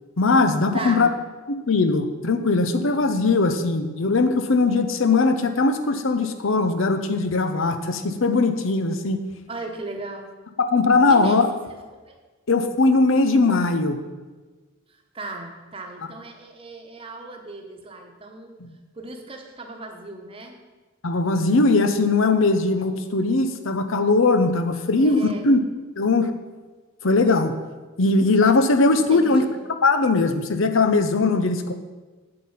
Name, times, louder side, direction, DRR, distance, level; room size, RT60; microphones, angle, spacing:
voice 1, 0.2-1.1 1.5-9.2 10.6-11.5 12.5-14.0 18.6-18.7 21.0-25.6 26.0-26.3 27.0-27.5 28.0-29.4 29.8-31.7, left 3 dB, 65° left, 8 dB, 0.7 m, -20 dB
voice 2, 0.7-1.1 9.5-10.3 11.1-11.5 12.1-12.2 14.9-18.6 18.9-20.6 25.0-25.4 28.9-29.6, right 2 dB, 25° right, 3 dB, 1.1 m, -36 dB
8.6 x 7.8 x 5.7 m, 1.3 s
head